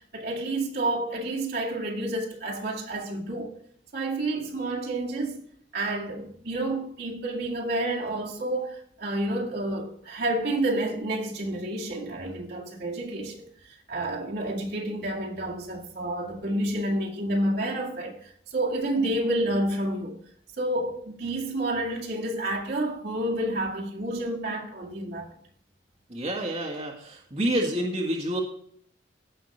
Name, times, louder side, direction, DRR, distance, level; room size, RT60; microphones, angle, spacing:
voice 1, 0.1-3.5 3.9-5.4 5.7-13.5 13.9-20.2 20.6-25.3, right 1 dB, 60° right, 2.0 m, -29 dB
voice 2, 26.1-28.4, right 1 dB, 35° right, 1.6 m, -28 dB
16.5 x 5.7 x 3.2 m
head